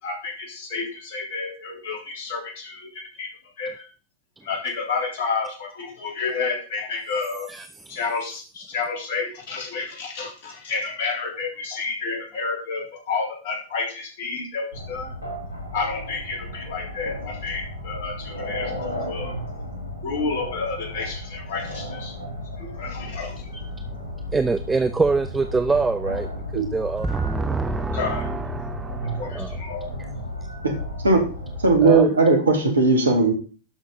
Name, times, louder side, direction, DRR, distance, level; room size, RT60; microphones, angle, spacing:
voice 1, 0.0-3.3 3.6-3.9 4.4-7.5 7.9-15.1 15.7-19.3 20.0-22.1 22.6-23.6 27.9-28.3 29.1-29.9, left 4 dB, 55° left, -1 dB, 3.7 m, -30 dB
sound 1, 14.7-31.9, left 1 dB, 80° left, 3.3 m, -34 dB
voice 2, 24.3-29.6 31.8-32.1, right 4 dB, 10° right, 10 dB, 0.6 m, -25 dB
voice 3, 31.6-33.3, right 3 dB, 75° right, 4 dB, 2.5 m, -17 dB
11.5 x 6.1 x 4.0 m, 0.38 s
figure-of-eight pair, 90°, 0 cm